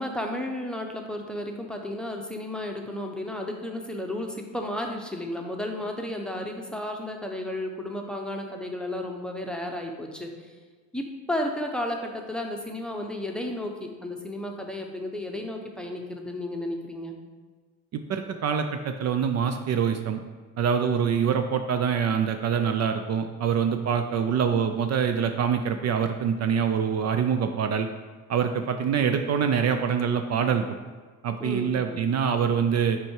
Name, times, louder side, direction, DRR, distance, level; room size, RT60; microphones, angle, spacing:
voice 1, 0.0-10.5 10.9-17.2 31.4-32.0, left 1 dB, ahead, 2 dB, 0.8 m, -33 dB
voice 2, 17.9-20.2 20.6-27.9 28.3-30.8 31.2-33.0, right 7 dB, 50° right, 7 dB, 0.5 m, -25 dB
6.1 x 4.7 x 4.5 m, 1.4 s
cardioid pair, 110°, 34 cm